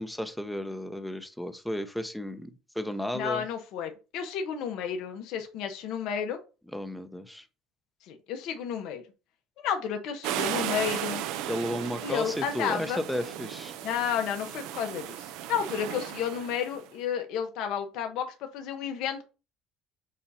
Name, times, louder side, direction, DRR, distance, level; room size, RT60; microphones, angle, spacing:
voice 1, 0.0-3.5 6.7-7.4 11.5-13.8, equal, 5° left, 9 dB, 0.9 m, -33 dB
voice 2, 3.1-6.4 8.1-9.0 9.6-11.2 12.0-13.0 13.8-18.3 18.5-19.2, left 8 dB, 70° left, 5 dB, 1.2 m, -31 dB
sound 1, 10.2-16.8, right 11 dB, 75° right, 0.8 m, -35 dB
7.3 x 2.7 x 5.6 m, 0.32 s
supercardioid pair, 100°, 0 cm